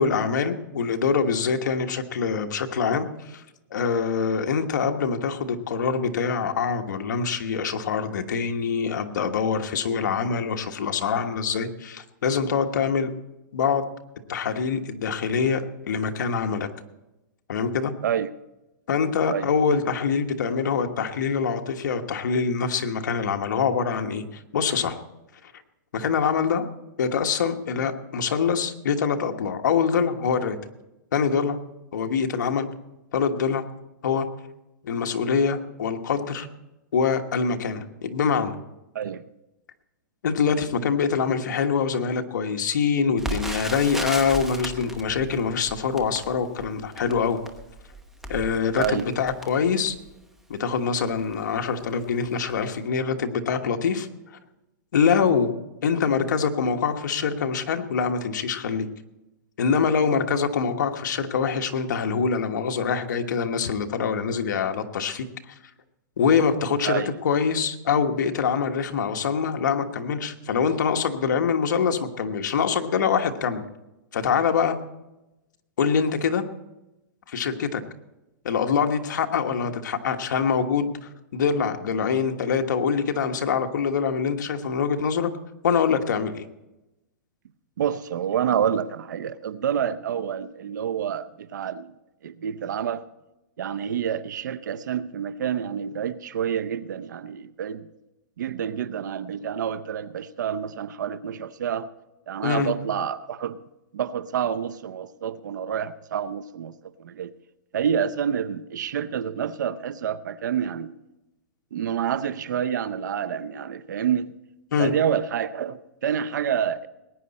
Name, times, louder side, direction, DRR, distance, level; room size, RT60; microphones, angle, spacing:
voice 1, 0.0-3.4 3.7-13.1 13.5-13.9 14.3-15.6 15.9-16.7 17.5-17.9 18.9-25.0 25.9-26.6 27.0-30.6 31.1-31.6 31.9-32.7 33.1-33.6 34.0-34.3 34.8-36.5 36.9-38.5 40.2-47.4 48.3-49.9 50.5-54.1 54.9-55.5 55.8-58.9 59.6-65.5 66.2-73.7 74.1-74.7 75.8-76.4 77.3-77.8 78.4-85.3 85.6-86.5 102.4-102.7 114.7-114.9, left 6 dB, 70° left, 5 dB, 1.4 m, -24 dB
Crackle, 43.2-50.1 50.8-50.9 51.2-51.4 52.0-52.2 52.5-52.6, right 2 dB, 5° right, 0.9 m, -36 dB
voice 2, 87.8-91.9 92.2-93.0 93.6-97.9 98.4-101.9 102.3-103.6 103.9-107.3 107.7-110.9 111.7-114.4 114.8-116.9, right 8 dB, 70° right, 14 dB, 0.7 m, -28 dB
20.5 x 9.8 x 4.2 m, 0.96 s
hypercardioid pair, 165°, 10 cm